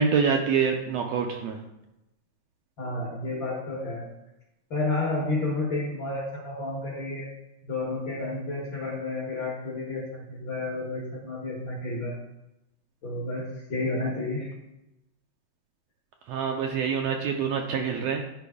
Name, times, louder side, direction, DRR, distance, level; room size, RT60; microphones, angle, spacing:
voice 1, 0.0-1.6 16.3-18.2, right 6 dB, 75° right, 2 dB, 1.6 m, -26 dB
voice 2, 2.8-4.1 4.7-7.3 7.6-12.2 13.0-14.5, left 2 dB, 55° left, -3 dB, 1.4 m, -31 dB
10.0 x 4.6 x 3.5 m, 0.91 s
omnidirectional pair, 3.4 m